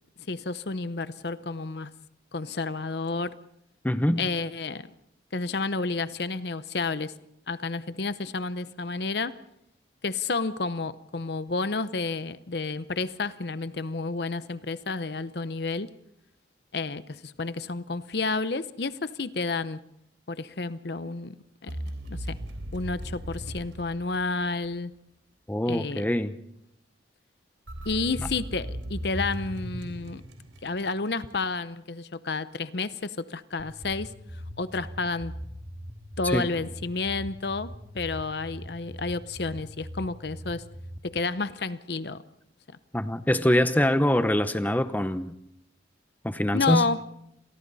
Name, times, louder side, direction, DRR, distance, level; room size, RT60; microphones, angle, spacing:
voice 1, 0.3-1.9 2.3-3.3 4.2-4.9 5.3-7.1 7.5-9.3 10.0-15.9 16.7-19.8 20.3-21.4 21.6-21.7 22.1-22.4 22.7-24.9 25.6-26.0 27.8-30.2 30.6-34.1 34.6-35.3 36.2-40.6 41.0-42.2 46.5-47.0, left 3 dB, 60° left, 14 dB, 0.8 m, -30 dB
voice 2, 3.8-4.2 25.5-26.3 36.2-36.5 42.9-45.3 46.2-46.9, left 1 dB, 10° left, 11 dB, 0.8 m, -24 dB
sound 1, 21.7-24.7 27.7-31.1, equal, 85° right, 3.7 m, -37 dB
sound 2, 33.6-41.0, equal, 20° right, 2.1 m, -42 dB
30.0 x 23.5 x 4.1 m, 0.76 s
head